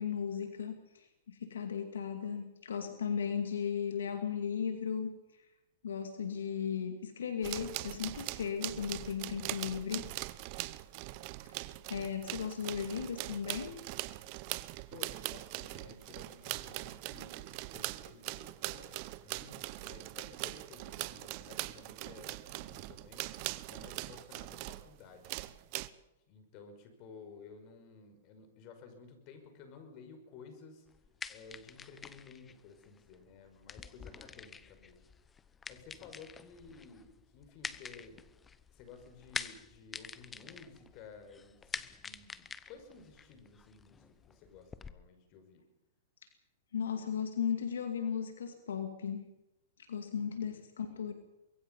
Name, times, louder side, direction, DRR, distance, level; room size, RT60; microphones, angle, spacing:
voice 1, 0.0-5.2 5.8-10.1 11.5-11.6 11.9-13.8 46.7-49.2 49.9-51.1, left 7 dB, 85° left, 6 dB, 2.2 m, -36 dB
sound 1, 7.4-24.9 25.2-25.9, right 19 dB, 45° right, 0.9 m, -41 dB
voice 2, 14.9-25.6 26.3-30.9 31.3-35.0 35.7-38.2 38.7-45.6 50.2-50.5, left 5 dB, 45° left, 7 dB, 5.6 m, -54 dB
sound 2, 30.9-44.9, left 6 dB, 15° left, 0.9 m, -47 dB
24.5 x 22.0 x 5.5 m, 0.96 s
hypercardioid pair, 130°, 0 cm